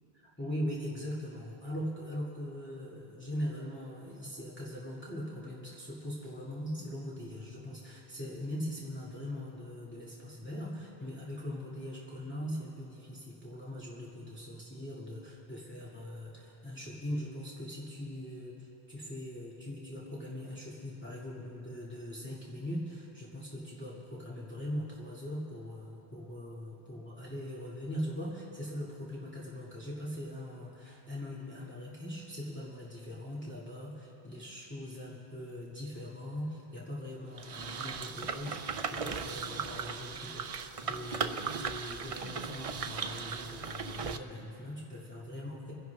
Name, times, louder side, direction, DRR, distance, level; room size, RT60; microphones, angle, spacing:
voice 1, 0.4-45.7, equal, 10° left, -7 dB, 2.2 m, -41 dB
sound 1, 37.4-44.2, right 5 dB, 45° right, 0.4 m, -37 dB
28.5 x 11.0 x 3.5 m, 2.9 s
omnidirectional pair, 1.1 m